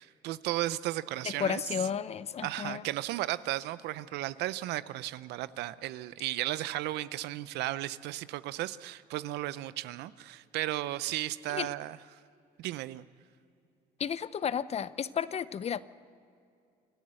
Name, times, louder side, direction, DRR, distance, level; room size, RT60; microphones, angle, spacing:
voice 1, 0.0-1.6 2.4-12.0 12.6-13.1, right 15 dB, 85° right, 16 dB, 0.6 m, -35 dB
voice 2, 1.2-2.8 11.5-11.7 14.0-15.8, left 7 dB, 40° left, 16 dB, 0.6 m, -33 dB
26.5 x 13.5 x 7.7 m, 2.5 s
cardioid pair, 110°, 17 cm